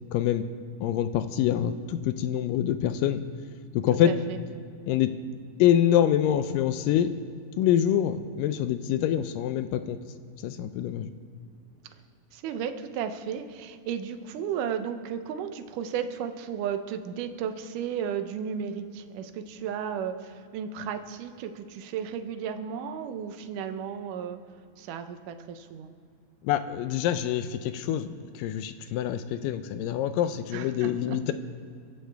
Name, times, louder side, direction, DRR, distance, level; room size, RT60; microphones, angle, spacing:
voice 1, 0.1-0.5 0.8-3.2 3.7-4.1 4.9-5.2 5.6-7.1 7.6-10.0 10.4-11.1 26.4-31.3, left 11 dB, 80° left, 11 dB, 2.1 m, -25 dB
voice 2, 4.0-4.4 12.3-24.4 24.8-25.9 30.5-31.2, right 8 dB, 75° right, 8 dB, 2.1 m, -34 dB
24.0 x 13.0 x 3.4 m, 2.4 s
omnidirectional pair, 4.3 m